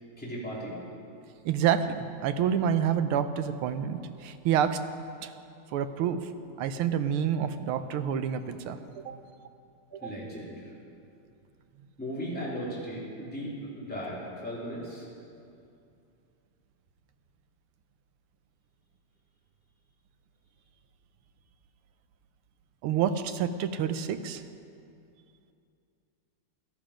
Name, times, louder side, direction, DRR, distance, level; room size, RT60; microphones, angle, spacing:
voice 1, 0.2-0.8 9.1-9.2 10.0-10.7 12.0-15.1, equal, 5° left, -7 dB, 3.4 m, -37 dB
voice 2, 1.4-4.8 5.2-5.3 5.7-6.3 6.6-9.2 9.9-10.1 22.8-24.4, right 8 dB, 80° right, 10 dB, 1.6 m, -28 dB
17.5 x 12.0 x 5.1 m, 2.5 s
omnidirectional pair, 2.4 m